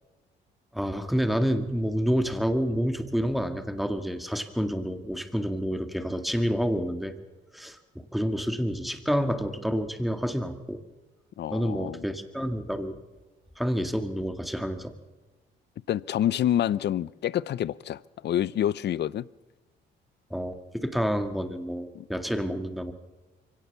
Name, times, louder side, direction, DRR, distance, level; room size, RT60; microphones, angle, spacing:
voice 1, 0.7-7.1 7.5-10.8 11.5-13.0 13.6-14.9 20.3-22.9, equal, ahead, 2.0 m, -28 dB
voice 2, 11.4-12.0 15.9-19.3 21.9-22.1, left 11 dB, 60° left, 0.6 m, -27 dB
23.5 x 17.5 x 6.9 m
cardioid pair, 90°, 20 cm